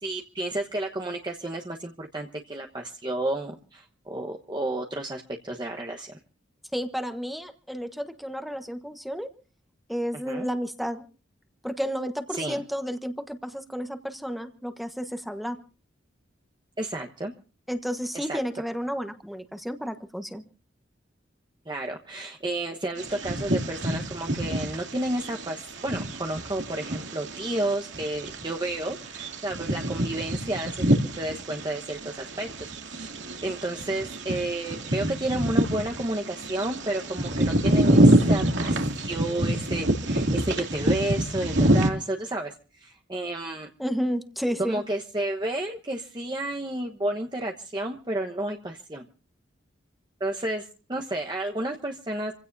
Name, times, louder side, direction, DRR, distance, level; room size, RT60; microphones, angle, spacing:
voice 1, 0.0-6.2 10.3-10.5 12.3-12.6 16.8-17.3 18.1-18.4 21.7-43.7 44.6-49.1 50.2-52.3, right 1 dB, 25° right, 2 dB, 1.2 m, -31 dB
voice 2, 6.7-9.3 9.9-11.0 11.6-15.6 17.7-20.4 43.8-44.8, equal, ahead, 7 dB, 1.3 m, -31 dB
Bird vocalization bird call bird song, 23.0-41.9, right 1 dB, 75° right, 2.6 m, -26 dB
27.5 x 16.5 x 2.7 m, 0.37 s
head